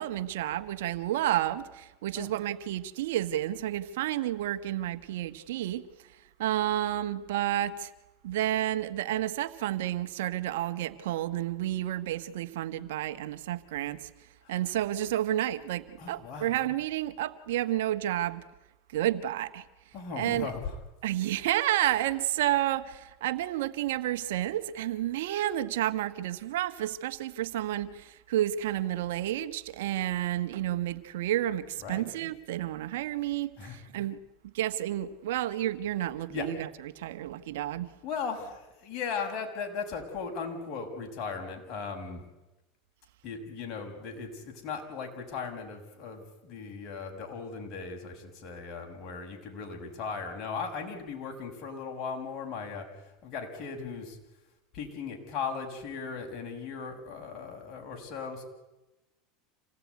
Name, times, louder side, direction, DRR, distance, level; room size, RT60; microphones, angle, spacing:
voice 1, 0.0-5.8 6.4-7.9 8.2-14.1 14.5-18.4 18.9-19.6 20.1-20.5 21.0-37.9, right 13 dB, 80° right, 1.4 m, -30 dB
voice 2, 16.0-16.6 19.9-20.8 31.7-32.0 33.6-33.8 36.3-36.5 38.0-42.2 43.2-54.2 54.7-58.4, left 5 dB, 45° left, 6.4 m, -37 dB
27.0 x 17.5 x 9.5 m
supercardioid pair, 105°, 0 cm